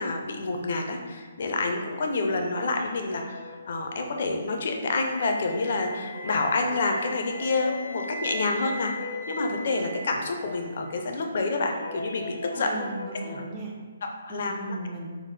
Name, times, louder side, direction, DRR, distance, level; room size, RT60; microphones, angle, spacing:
voice 1, 0.0-8.9 9.3-12.8 14.3-14.8, left 3 dB, 50° left, 3 dB, 0.4 m, -28 dB
sound 1, 1.4-13.5, left 2 dB, 90° left, 0.7 m, -40 dB
Wind instrument woodwind instrument, 5.1-11.1, equal, 90° right, 0.4 m, -39 dB
voice 2, 12.6-13.7 14.3-15.2, right 2 dB, 20° right, -2 dB, 0.3 m, -37 dB
3.4 x 2.0 x 3.2 m, 1.4 s
hypercardioid pair, 165°, 0 cm